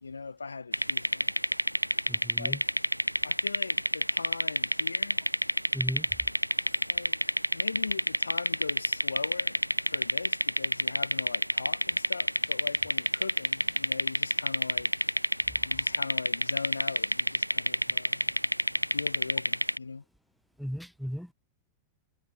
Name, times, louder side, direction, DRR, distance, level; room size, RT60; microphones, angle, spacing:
voice 1, 0.0-1.3 2.4-2.6 3.2-5.2 6.9-14.9 15.6-18.3 18.9-20.0, left 4 dB, 75° left, 1.8 m, -40 dB
sound 1, 0.7-19.8, equal, 90° right, 0.3 m, -28 dB
voice 2, 2.1-2.6 5.7-6.1 20.6-21.3, equal, ahead, 0.7 m, -35 dB
figure-of-eight pair, 90°, 0 cm